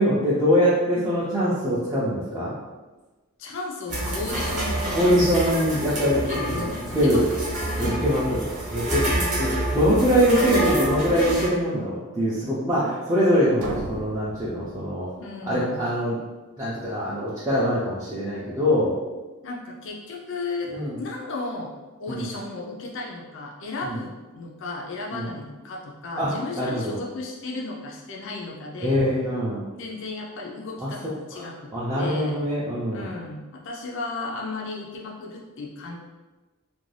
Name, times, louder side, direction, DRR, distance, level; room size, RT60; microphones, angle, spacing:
voice 1, 0.0-2.5 4.9-6.7 6.9-7.3 7.8-8.4 8.7-9.1 9.4-15.1 15.5-16.2 16.6-19.0 20.7-21.0 22.1-22.2 23.8-24.0 25.1-25.3 26.2-27.0 28.8-29.7 30.8-31.5 31.7-33.1, equal, 15° right, -9 dB, 0.4 m, -23 dB
voice 2, 3.4-5.2 5.9-8.1 9.0-9.4 15.2-15.8 19.4-21.7 22.0-29.0 29.8-31.7 32.0-32.4 32.9-35.9, left 3 dB, 55° left, -1 dB, 0.4 m, -35 dB
sound 1, 3.9-11.5, right 1 dB, 35° right, 0.8 m, -27 dB
sound 2, 13.6-15.5, right 2 dB, 80° right, 0.4 m, -37 dB
2.5 x 2.2 x 3.2 m, 1.2 s
head